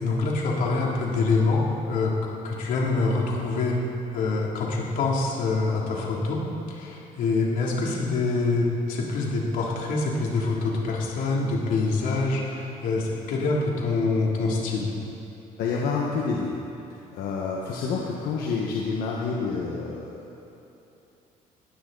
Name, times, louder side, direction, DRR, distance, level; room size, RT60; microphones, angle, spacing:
voice 1, 0.0-2.1 2.4-3.8 4.1-14.9, left 3 dB, 65° left, -3 dB, 3.2 m, -25 dB
voice 2, 15.6-16.5 17.1-20.4, left 4 dB, 85° left, -3 dB, 1.7 m, -28 dB
19.5 x 15.5 x 4.2 m, 2.9 s
cardioid pair, 150°, 15 cm